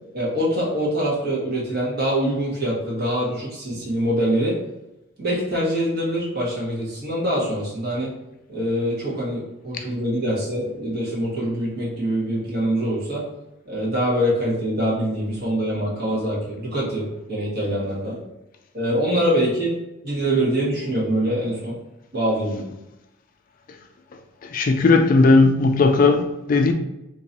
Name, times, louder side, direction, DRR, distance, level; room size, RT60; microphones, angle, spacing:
voice 1, 0.1-4.5 5.2-8.1 8.5-13.2 13.6-18.2 18.7-19.7 20.0-21.8 22.1-22.7, equal, 50° right, 1.3 m, -24 dB
voice 2, 24.4-26.7, left 3 dB, 45° left, 0.3 m, -16 dB
2.9 x 2.6 x 4.1 m
head